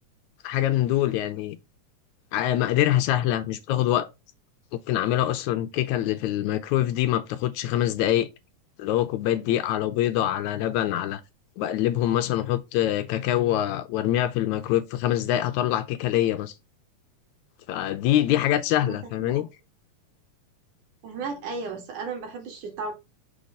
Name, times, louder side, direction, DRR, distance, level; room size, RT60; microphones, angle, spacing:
voice 1, 0.4-1.6 2.3-4.1 4.7-8.3 8.8-11.2 11.6-16.5 17.7-19.5, left 12 dB, 80° left, 1.9 m, -24 dB
voice 2, 21.0-22.9, right 4 dB, 80° right, 3.7 m, -34 dB
6.5 x 4.0 x 4.7 m
omnidirectional pair, 3.6 m